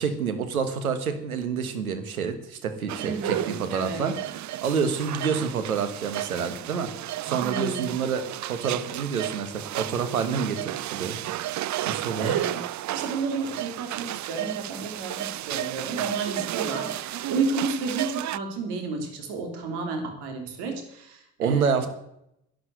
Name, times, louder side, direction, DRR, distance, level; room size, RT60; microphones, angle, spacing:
voice 1, 0.0-6.9 7.2-11.2 11.9-12.4 21.4-21.9, right 6 dB, 90° right, 9 dB, 1.4 m, -28 dB
sound 1, 2.9-18.4, right 14 dB, 45° right, 0.5 m, -33 dB
voice 2, 3.0-4.1 7.4-7.9 12.2-12.6 12.9-21.8, right 4 dB, 70° right, 4 dB, 3.3 m, -31 dB
11.5 x 10.5 x 8.0 m, 0.78 s
hypercardioid pair, 50°, 42 cm